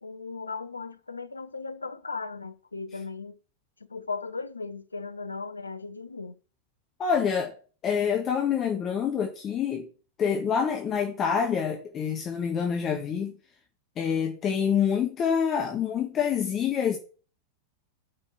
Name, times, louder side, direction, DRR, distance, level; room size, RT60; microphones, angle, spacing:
voice 1, 0.0-3.4 3.9-6.4, left 4 dB, 80° left, 0.7 m, -37 dB
voice 2, 7.0-7.6 7.8-9.9 10.2-13.3 14.0-17.0, left 7 dB, 30° left, 1.4 m, -26 dB
12.5 x 5.3 x 5.8 m
figure-of-eight pair, 90°, 0 cm